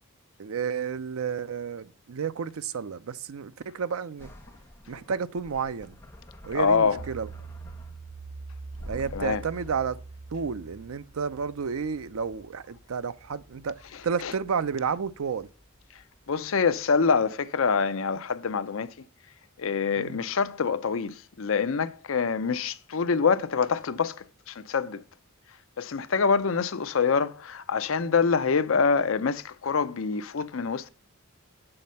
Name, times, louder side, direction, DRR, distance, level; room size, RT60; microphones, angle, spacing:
voice 1, 0.4-4.3 4.9-6.0 6.4-7.3 8.9-10.0 10.3-15.5 20.0-20.2, right 6 dB, 80° right, 0.5 m, -31 dB
sound 1, 4.2-8.2 8.7-9.8, left 1 dB, 10° left, 1.6 m, -48 dB
voice 2, 6.5-7.0 9.1-9.4 14.2-14.3 16.3-18.9 19.6-25.0 25.8-30.9, left 5 dB, 65° left, 0.5 m, -25 dB
sound 2, 6.9-16.3 16.7-16.8, right 4 dB, 40° right, 2.3 m, -45 dB
7.8 x 4.2 x 5.4 m
head